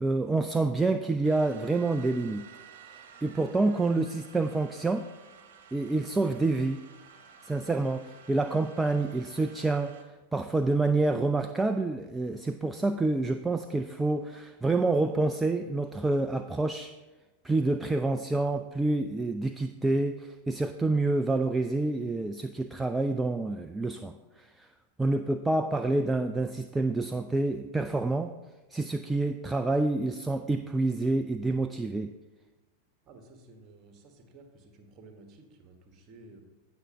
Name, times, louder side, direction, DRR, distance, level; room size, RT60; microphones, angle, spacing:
voice 1, 0.0-2.5 3.2-5.1 5.7-6.8 7.4-10.0 10.3-16.9 17.4-24.7 25.0-28.3 28.7-32.1, right 2 dB, 10° right, 8 dB, 0.4 m, -28 dB
sound 1, 1.2-10.0, right 6 dB, 50° right, 1.3 m, -53 dB
voice 2, 33.1-36.4, right 2 dB, 30° right, 5 dB, 1.5 m, -53 dB
16.5 x 6.2 x 3.0 m, 1.1 s
figure-of-eight pair, 90°, 0 cm